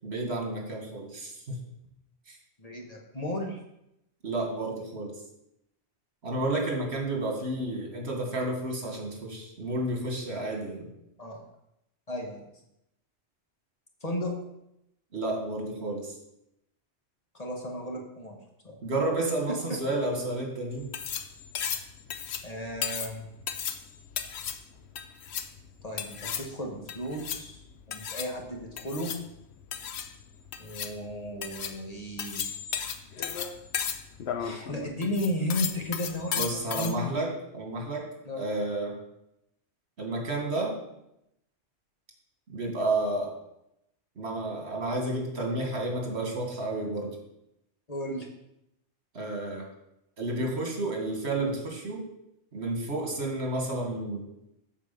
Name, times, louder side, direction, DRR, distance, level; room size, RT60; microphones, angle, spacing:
voice 1, 0.0-1.6 2.3-2.4 4.2-5.2 6.2-10.9 15.1-16.2 18.8-20.9 36.4-38.1 38.4-39.0 40.0-40.8 42.5-43.3 44.2-47.2 49.1-49.6 50.2-52.1 52.5-54.3, right 2 dB, 70° right, 0 dB, 2.0 m, -31 dB
voice 2, 2.6-3.6 11.2-11.4 12.1-12.4 14.0-14.3 17.3-18.4 18.6-18.8 19.5-19.8 22.4-23.3 25.8-27.6 27.9-29.1 30.6-32.4 34.4-37.0 38.2-38.4 47.9-48.3, equal, 35° left, 0 dB, 1.4 m, -34 dB
sound 1, 20.7-36.9, left 8 dB, 70° left, 0.9 m, -35 dB
8.3 x 4.7 x 6.9 m, 0.83 s
omnidirectional pair, 1.2 m